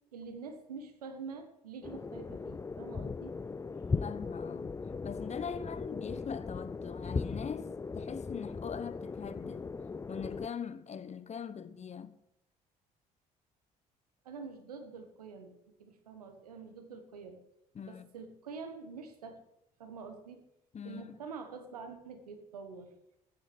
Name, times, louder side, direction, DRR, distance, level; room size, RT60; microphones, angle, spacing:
voice 1, 0.1-3.3 14.2-17.4 17.8-19.4 19.8-20.4 20.8-22.9, right 5 dB, 80° right, 1.4 m, -46 dB
sound 1, 1.8-10.5, left 4 dB, 15° left, 0.4 m, -38 dB
voice 2, 4.0-4.8 5.0-9.8 10.1-12.1 17.7-18.1 20.7-21.2, left 7 dB, 35° left, 1.1 m, -41 dB
15.0 x 7.7 x 7.8 m
figure-of-eight pair, 50°, 19 cm